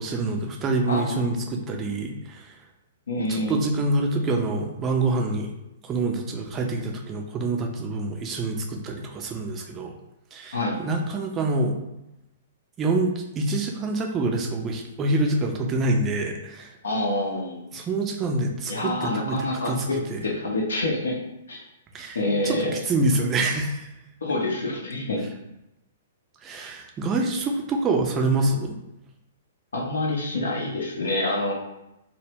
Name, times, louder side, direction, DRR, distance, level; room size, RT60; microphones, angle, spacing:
voice 1, 0.0-2.5 3.3-5.5 5.8-9.9 10.3-11.8 12.8-16.7 17.7-19.4 19.7-20.2 21.9-22.2 22.4-23.9 26.4-28.7, right 2 dB, 20° right, 2 dB, 0.4 m, -26 dB
voice 2, 0.9-1.2 3.1-3.5 10.5-10.8 16.8-17.6 18.7-21.2 21.5-21.6 22.1-22.8 24.2-25.2 29.7-31.5, left 1 dB, 70° left, -1 dB, 0.5 m, -27 dB
2.1 x 2.0 x 3.2 m, 0.89 s
figure-of-eight pair, 110°, 0 cm